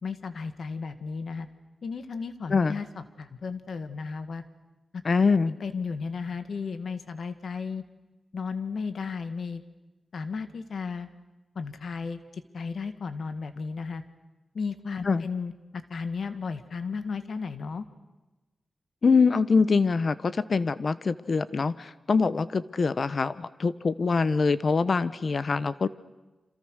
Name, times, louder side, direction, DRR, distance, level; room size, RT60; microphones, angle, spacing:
voice 1, 0.0-1.5 1.8-4.4 5.6-7.8 8.3-9.6 10.1-11.1 11.6-12.2 12.5-14.0 14.5-17.9, left 5 dB, 75° left, 10 dB, 1.9 m, -34 dB
voice 2, 5.0-5.6 15.0-15.2 19.0-25.9, left 4 dB, 55° left, 15 dB, 1.1 m, -24 dB
29.0 x 27.0 x 6.5 m, 1.1 s
wide cardioid pair, 85°, 0 cm